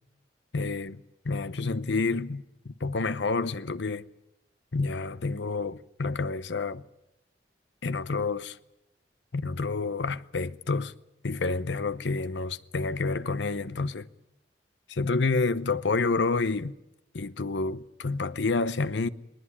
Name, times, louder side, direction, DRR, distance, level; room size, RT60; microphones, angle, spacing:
voice 1, 0.5-4.0 4.7-6.8 7.8-8.6 9.3-10.9 11.2-14.1 14.9-16.7 17.1-19.1, left 3 dB, 90° left, 0.8 m, -29 dB
19.5 x 19.5 x 9.9 m
head